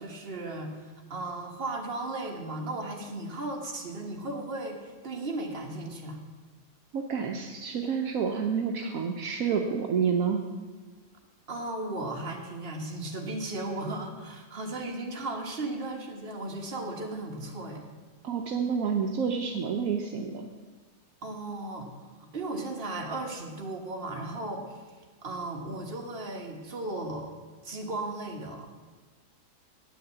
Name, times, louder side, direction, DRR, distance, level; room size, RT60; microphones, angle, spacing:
voice 1, 0.0-6.2 11.5-17.9 21.2-21.9 22.2-24.8 25.2-27.3 27.6-28.7, right 2 dB, 40° right, 1 dB, 1.6 m, -36 dB
voice 2, 6.9-10.4 18.2-20.5, right 6 dB, 70° right, 3 dB, 1.2 m, -29 dB
8.9 x 6.2 x 8.1 m, 1.4 s
omnidirectional pair, 1.6 m